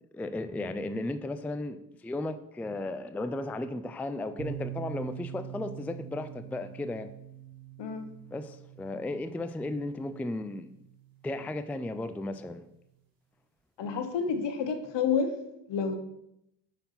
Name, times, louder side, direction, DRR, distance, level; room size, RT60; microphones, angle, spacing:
voice 1, 0.1-7.1 8.3-10.7 11.2-12.6, left 2 dB, 5° left, 10 dB, 0.3 m, -35 dB
sound 1, 4.4-12.1, right 10 dB, 50° right, 1.8 m, -44 dB
voice 2, 13.8-15.3 15.7-15.9, left 6 dB, 65° left, 7 dB, 1.1 m, -29 dB
5.2 x 4.5 x 5.7 m, 0.81 s
supercardioid pair, 65°, 45 cm